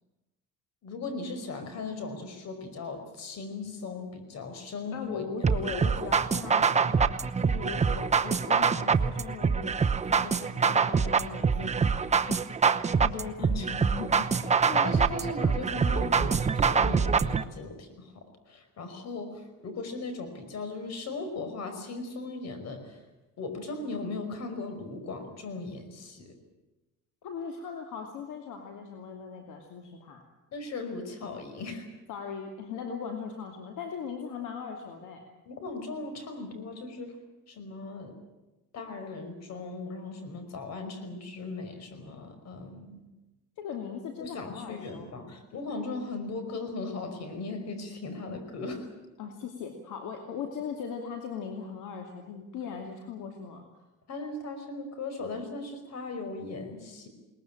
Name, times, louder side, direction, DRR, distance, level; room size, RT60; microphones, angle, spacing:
voice 1, 0.8-5.3 13.4-13.8 14.8-23.0 23.4-26.3 30.5-31.9 35.5-37.2 37.5-38.1 38.7-43.0 44.2-48.9 54.1-57.1, left 3 dB, 55° left, 8 dB, 5.2 m, -38 dB
voice 2, 4.9-12.5 13.0-15.0 27.2-30.2 32.1-35.3 43.6-45.2 49.2-53.8, left 6 dB, 75° left, 4 dB, 2.7 m, -39 dB
sound 1, 5.4-17.4, right 5 dB, 20° right, 0.8 m, -25 dB
21.5 x 20.0 x 9.0 m, 1.1 s
cardioid pair, 105°, 31 cm